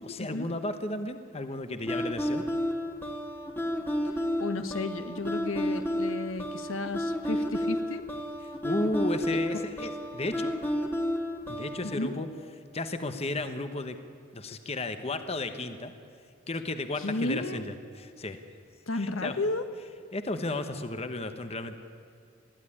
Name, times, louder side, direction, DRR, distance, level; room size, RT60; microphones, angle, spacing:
voice 1, 0.0-2.4 8.6-10.6 11.5-12.3 12.7-14.0 14.3-15.9 16.5-18.4 18.9-19.4 20.1-21.7, left 2 dB, 30° left, 8 dB, 1.1 m, -33 dB
sound 1, 1.9-12.0, equal, 10° left, 1.7 m, -31 dB
voice 2, 4.4-8.1 11.8-12.1 17.0-17.6 18.9-19.7, left 2 dB, 85° left, 9 dB, 1.2 m, -33 dB
21.5 x 14.5 x 9.9 m, 2.3 s
head